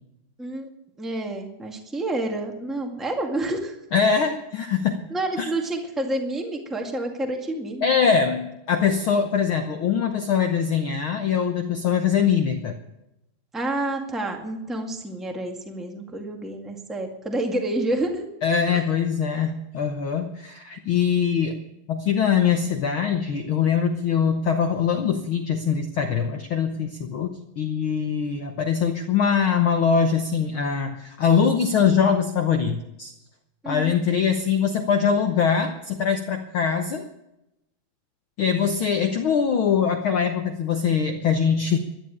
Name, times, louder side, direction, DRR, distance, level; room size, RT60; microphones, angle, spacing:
voice 1, 0.4-0.7 1.0-3.7 5.1-7.9 13.5-18.3 18.7-18.8 33.6-33.8, right 1 dB, ahead, 3 dB, 1.0 m, -29 dB
voice 2, 3.9-5.0 5.4-5.5 7.8-12.8 18.4-21.6 21.9-33.1 33.7-37.1 38.4-41.8, left 7 dB, 75° left, 6 dB, 1.2 m, -22 dB
13.5 x 10.5 x 8.6 m, 0.88 s
omnidirectional pair, 3.7 m